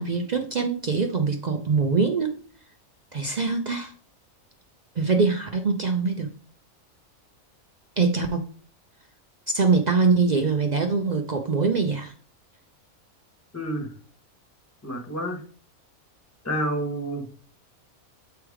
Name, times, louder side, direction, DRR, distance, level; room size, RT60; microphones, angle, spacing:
voice 1, 0.0-2.3 3.1-3.9 5.0-6.3 8.0-8.4 9.5-12.1, right 4 dB, 80° right, 0.4 m, -23 dB
voice 2, 13.5-13.9 14.8-15.4 16.4-17.3, right 1 dB, 10° left, 1.1 m, -29 dB
8.0 x 3.1 x 4.8 m
omnidirectional pair, 1.5 m